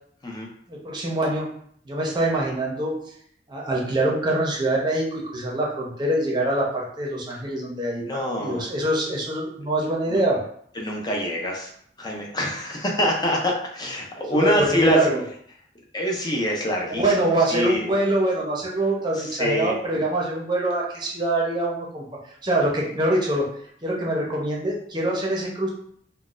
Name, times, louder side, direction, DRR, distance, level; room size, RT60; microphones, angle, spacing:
voice 1, 0.7-1.5 1.9-2.9 3.5-8.0 8.4-10.4 14.3-15.2 16.9-22.0 22.4-23.5 23.8-25.7, right 1 dB, 25° right, -3 dB, 0.7 m, -24 dB
voice 2, 8.1-8.7 10.1-10.2 10.7-11.7 12.0-15.1 15.9-17.9 19.1-19.7, equal, 25° left, -1 dB, 0.5 m, -25 dB
3.8 x 2.2 x 2.4 m, 0.65 s
head